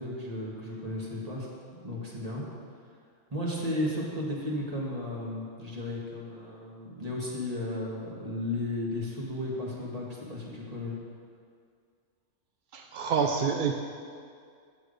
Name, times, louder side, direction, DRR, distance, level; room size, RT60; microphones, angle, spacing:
voice 1, 0.0-1.5 1.8-2.4 3.3-10.9, left 1 dB, 30° right, -4 dB, 1.5 m, -34 dB
voice 2, 12.7-13.7, right 6 dB, 65° right, 3 dB, 0.5 m, -27 dB
8.4 x 6.1 x 5.1 m, 2.2 s
omnidirectional pair, 1.4 m